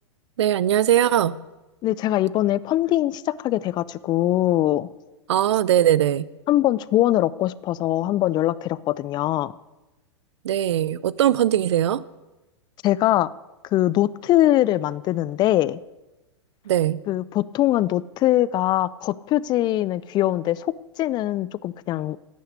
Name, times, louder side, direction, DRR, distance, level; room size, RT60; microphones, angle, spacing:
voice 1, 0.4-1.4 5.3-6.3 10.4-12.0 16.7-17.0, right 11 dB, 65° right, 19 dB, 0.6 m, -20 dB
voice 2, 1.8-4.9 6.5-9.5 12.8-13.3 13.7-15.8 17.1-22.2, left 14 dB, 30° left, 19 dB, 0.4 m, -22 dB
11.5 x 9.3 x 8.2 m, 1.1 s
hypercardioid pair, 105°, 15 cm